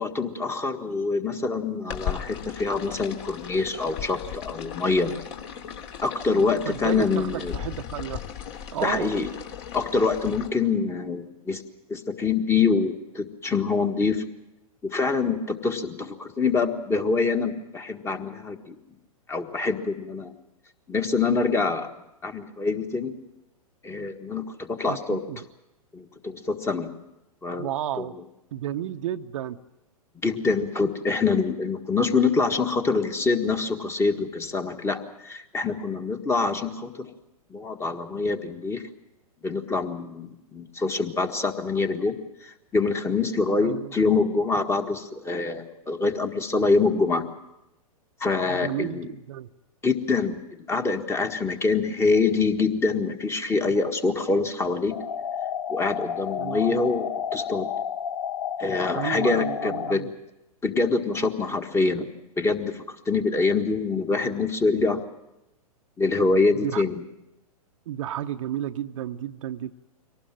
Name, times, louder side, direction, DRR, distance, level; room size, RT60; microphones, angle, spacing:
voice 1, 0.0-5.1 6.0-7.6 8.8-9.3 9.7-11.6 11.9-14.2 14.8-18.8 19.3-20.3 20.9-21.9 22.2-23.1 23.8-25.2 25.9-26.9 27.4-27.7 28.0-28.1 30.2-37.1 37.5-38.9 39.4-42.2 42.4-47.3 48.2-49.1 49.8-50.4 50.7-54.9 55.7-57.7 58.6-60.0 60.6-62.1 62.4-65.0 66.0-67.0, left 4 dB, 15° left, 7 dB, 1.5 m, -25 dB
sound 1, 1.9-10.5, left 8 dB, 50° left, 3.1 m, -37 dB
voice 2, 6.3-8.2 8.7-9.2 24.9-25.5 27.6-28.1 28.5-29.6 43.6-43.9 48.5-49.5 56.4-56.8 58.9-60.1 66.5-66.8 67.9-69.7, right 11 dB, 60° right, 8 dB, 0.9 m, -32 dB
sound 2, 54.9-59.9, left 8 dB, 70° left, 1.0 m, -31 dB
24.0 x 18.5 x 7.6 m, 0.91 s
hypercardioid pair, 115°, 19 cm